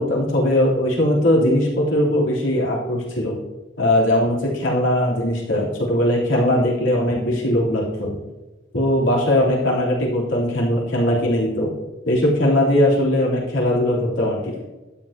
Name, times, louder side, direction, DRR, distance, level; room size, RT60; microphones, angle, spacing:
voice 1, 0.0-3.4 3.8-8.1 8.7-11.7 12.0-14.5, left 1 dB, 75° left, -5 dB, 3.4 m, -20 dB
12.0 x 7.6 x 2.9 m, 1.1 s
head